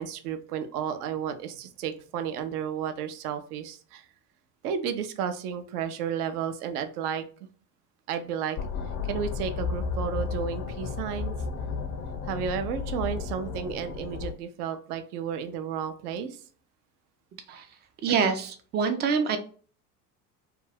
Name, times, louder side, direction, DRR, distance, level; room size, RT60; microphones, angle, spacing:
voice 1, 0.0-4.1 4.6-7.3 8.1-8.6 9.0-11.3 12.2-16.4, right 8 dB, 70° right, 9 dB, 0.6 m, -32 dB
sound 1, 8.6-14.3, left 5 dB, 35° left, 0.5 m, -33 dB
voice 2, 18.0-19.4, right 6 dB, 25° right, 7 dB, 0.3 m, -25 dB
2.5 x 2.2 x 3.2 m, 0.43 s
hypercardioid pair, 70°, 48 cm